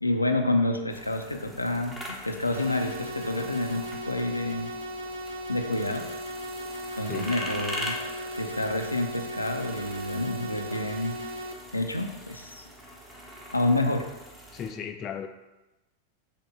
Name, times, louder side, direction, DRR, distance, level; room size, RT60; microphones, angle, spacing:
voice 1, 0.0-4.7 5.5-6.1 7.0-8.0 8.3-11.2 11.7-12.7 13.5-14.1, left 2 dB, 85° left, 4 dB, 0.6 m, -28 dB
sound 1, 0.9-14.7, equal, 15° right, 1.2 m, -42 dB
sound 2, 2.5-11.5, equal, 65° right, 0.6 m, -37 dB
voice 2, 7.1-7.5 14.5-15.3, left 7 dB, 30° left, 6 dB, 0.5 m, -36 dB
5.9 x 3.6 x 5.3 m, 1.0 s
figure-of-eight pair, 90°, 0 cm